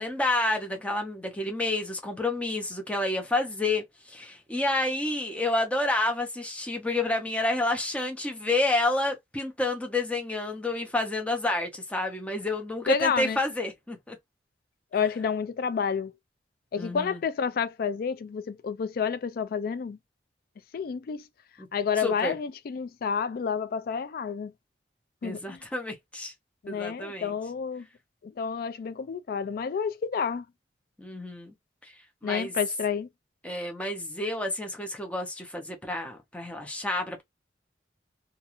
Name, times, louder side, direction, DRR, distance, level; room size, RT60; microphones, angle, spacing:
voice 1, 0.0-14.2 16.8-17.2 21.6-21.7 22.0-22.4 25.2-26.3 26.7-27.3 31.0-31.5 31.8-31.9 32.2-32.5 33.4-37.2, left 2 dB, 10° left, 0.6 m, -29 dB
voice 2, 12.9-13.4 14.9-16.1 16.7-20.0 20.7-21.2 21.7-24.5 25.2-25.6 26.6-27.9 28.2-30.5 32.2-33.1, left 6 dB, 55° left, 0.3 m, -29 dB
2.4 x 2.3 x 2.8 m
head